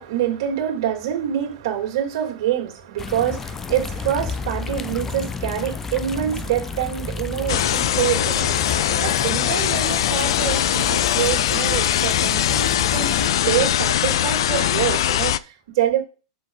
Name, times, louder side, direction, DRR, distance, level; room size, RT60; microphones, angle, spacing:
voice 1, 0.0-16.0, right 11 dB, 55° right, 2.8 m, -26 dB
sound 1, 3.0-13.3, left 5 dB, 10° left, 0.4 m, -32 dB
sound 2, 7.5-15.4, left 11 dB, 65° left, 0.5 m, -21 dB
7.1 x 6.5 x 4.0 m
supercardioid pair, 175°, 3 cm